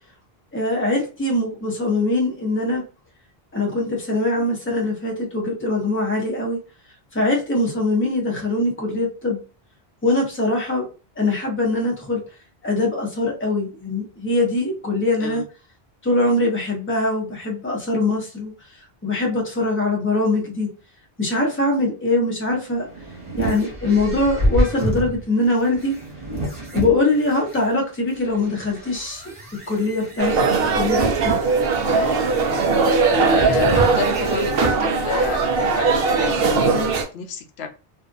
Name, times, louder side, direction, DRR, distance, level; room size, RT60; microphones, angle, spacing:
voice 1, 0.5-2.8 3.5-6.6 7.1-9.4 10.0-10.8 11.2-12.2 12.6-15.4 16.0-18.5 19.0-20.7 21.2-22.9 23.4-25.9 26.7-29.2 29.7-31.4, left 2 dB, 15° left, -1 dB, 0.7 m, -22 dB
sound 1, 22.5-27.6 28.2-34.8, right 1 dB, 35° right, 0.9 m, -28 dB
sound 2, 30.2-37.0, right 4 dB, 70° right, 0.8 m, -19 dB
voice 2, 31.8-32.3 33.3-37.7, left 6 dB, 85° left, 5 dB, 0.9 m, -30 dB
2.6 x 2.4 x 2.4 m, 0.34 s
omnidirectional pair, 1.0 m